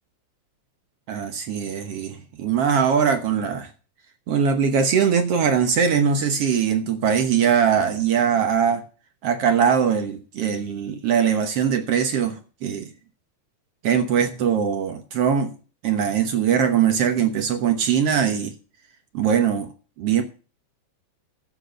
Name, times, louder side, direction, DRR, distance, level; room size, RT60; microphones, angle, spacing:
voice 1, 1.1-3.7 4.3-8.8 9.2-12.9 13.8-15.5 15.8-18.5 19.1-19.7 20.0-20.2, right 7 dB, 60° right, 1.7 m, -21 dB
13.5 x 7.4 x 6.5 m
omnidirectional pair, 3.8 m